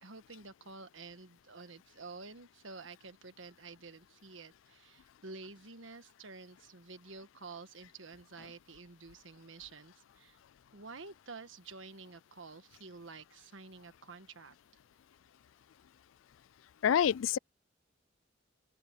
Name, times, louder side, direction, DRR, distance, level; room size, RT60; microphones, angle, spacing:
voice 1, 0.0-10.4 10.7-14.5, right 4 dB, 75° right, 1.4 m, -50 dB
voice 2, 16.8-17.4, left 8 dB, 80° left, 0.3 m, -26 dB
open air
head